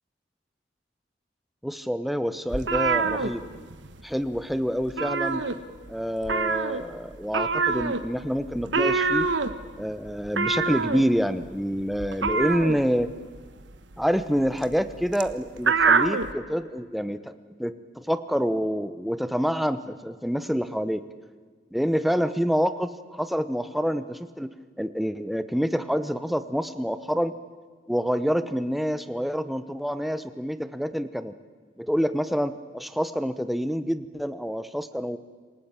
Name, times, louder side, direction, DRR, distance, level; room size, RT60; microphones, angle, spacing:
voice 1, 1.6-3.4 4.0-5.4 5.9-9.3 9.8-13.1 14.0-17.3 17.6-21.0 21.7-27.3 27.9-31.3 31.8-35.2, equal, ahead, 11 dB, 0.8 m, -27 dB
sound 1, 2.5-4.0 4.3-4.5 4.8-5.9 6.2-16.3, right 4 dB, 85° right, 1.3 m, -26 dB
27.5 x 18.0 x 8.9 m, 1.5 s
head